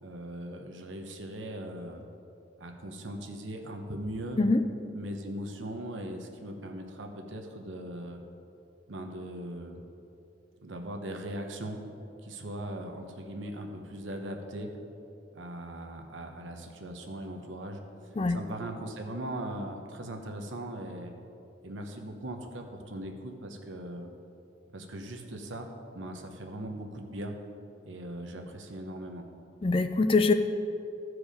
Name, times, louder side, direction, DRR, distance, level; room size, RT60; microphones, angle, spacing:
voice 1, 0.0-2.0 2.6-4.4 4.9-8.2 8.9-9.8 10.6-11.8 12.2-14.7 15.3-21.1 21.6-24.1 24.7-25.7 25.9-27.4 27.8-29.3, right 1 dB, 90° right, 3 dB, 1.0 m, -39 dB
voice 2, 29.6-30.3, left 3 dB, 30° left, 9 dB, 0.4 m, -23 dB
14.0 x 4.8 x 5.0 m, 2.7 s
head